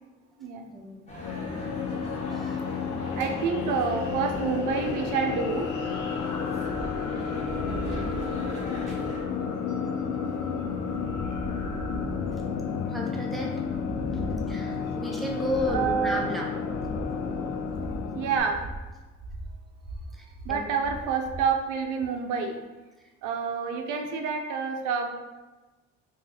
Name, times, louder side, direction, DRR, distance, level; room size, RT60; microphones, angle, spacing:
voice 1, 0.7-1.0 2.3-2.6 7.7-8.2 8.9-9.0 12.9-13.6 14.5-16.5 18.3-18.5 20.1-20.7, equal, ahead, -1 dB, 0.5 m, -33 dB
sound 1, 1.1-18.4, left 5 dB, 75° left, 0.5 m, -31 dB
sound 2, 1.1-9.2, equal, 20° left, 1.1 m, -43 dB
voice 2, 3.2-5.7 15.7-16.2 18.1-18.6 20.5-22.6 23.2-25.1, right 6 dB, 90° right, 4 dB, 0.5 m, -28 dB
sound 3, 6.6-21.5, right 1 dB, 35° right, 0.7 m, -40 dB
2.6 x 2.5 x 3.9 m, 1.2 s
cardioid pair, 90°, 30 cm